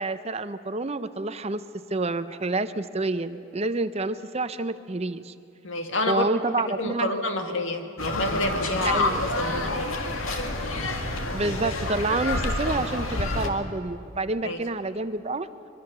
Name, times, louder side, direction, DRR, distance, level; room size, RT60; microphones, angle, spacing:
voice 1, 0.0-1.6 1.9-5.3 6.1-7.1 8.9-9.2 11.3-15.5, right 3 dB, 30° right, 12 dB, 0.6 m, -28 dB
voice 2, 5.6-6.2 6.8-9.9 14.4-14.6, left 2 dB, 65° left, 5 dB, 1.9 m, -27 dB
sound 1, 8.0-13.5, left 2 dB, 85° left, 2.1 m, -29 dB
23.5 x 23.5 x 6.7 m, 2.7 s
head